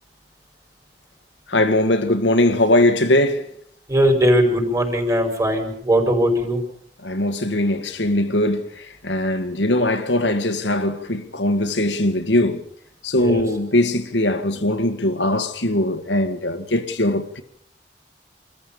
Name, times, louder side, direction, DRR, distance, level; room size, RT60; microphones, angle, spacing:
voice 1, 1.5-3.5 7.0-8.7 9.0-12.6 13.0-17.4, left 1 dB, 85° left, 2.0 m, -20 dB
voice 2, 3.9-6.6 13.2-13.4, equal, 20° right, 5.3 m, -19 dB
27.0 x 14.0 x 7.1 m
head